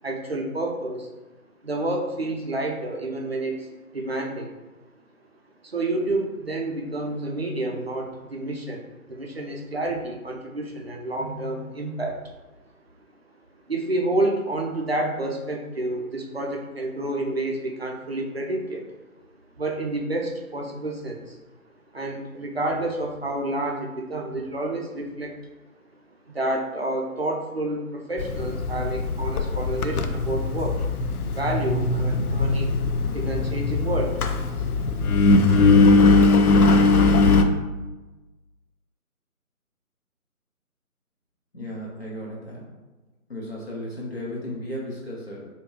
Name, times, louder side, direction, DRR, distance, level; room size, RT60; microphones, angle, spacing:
voice 1, 0.0-1.1 1.6-4.5 5.6-12.3 13.7-18.8 19.6-21.4 21.9-25.4 26.3-30.8 31.3-32.8 33.1-34.2, right 2 dB, 45° right, 1 dB, 0.4 m, -29 dB
Engine, 28.2-37.4, left 3 dB, 80° left, 0.5 m, -20 dB
voice 2, 41.5-42.6 43.3-45.5, left 1 dB, 45° left, -4 dB, 0.8 m, -34 dB
3.2 x 2.7 x 3.2 m, 1.1 s
figure-of-eight pair, 160°, 44 cm